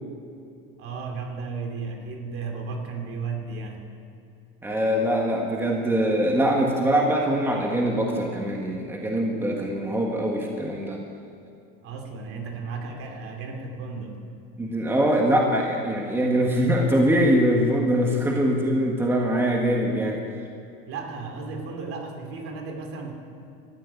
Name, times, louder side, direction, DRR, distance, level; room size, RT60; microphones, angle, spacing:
voice 1, 0.8-3.8 11.8-14.2 20.9-23.1, right 4 dB, 50° right, 3 dB, 2.9 m, -34 dB
voice 2, 4.6-11.0 14.6-20.2, equal, 10° right, 0 dB, 1.7 m, -23 dB
13.5 x 9.9 x 9.8 m, 2.6 s
supercardioid pair, 125°, 29 cm